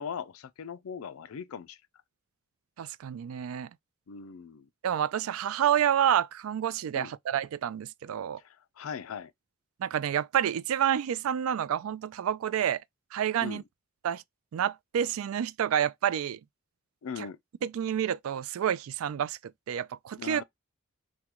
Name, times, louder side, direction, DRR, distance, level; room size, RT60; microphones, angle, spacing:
voice 1, 0.0-1.8 4.1-4.7 6.9-7.1 8.4-9.3 13.4-13.6 17.0-17.4 20.2-20.4, left 6 dB, 80° left, 0.4 m, -39 dB
voice 2, 2.8-3.7 4.8-8.4 9.8-12.8 13.1-13.6 14.0-14.2 14.5-16.4 17.2-17.3 17.6-19.4 19.7-20.4, right 9 dB, 80° right, 0.3 m, -29 dB
3.7 x 2.1 x 2.9 m
head